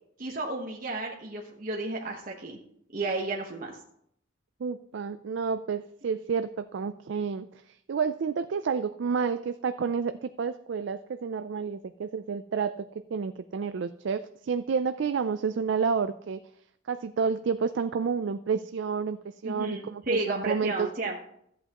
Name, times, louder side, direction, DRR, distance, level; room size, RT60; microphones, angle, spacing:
voice 1, 0.2-2.6 2.9-3.8 19.4-21.2, right 2 dB, 45° right, -1 dB, 1.1 m, -32 dB
voice 2, 4.6-16.4 16.9-20.9, right 5 dB, 75° right, 10 dB, 0.4 m, -30 dB
14.0 x 8.1 x 3.0 m, 0.70 s
head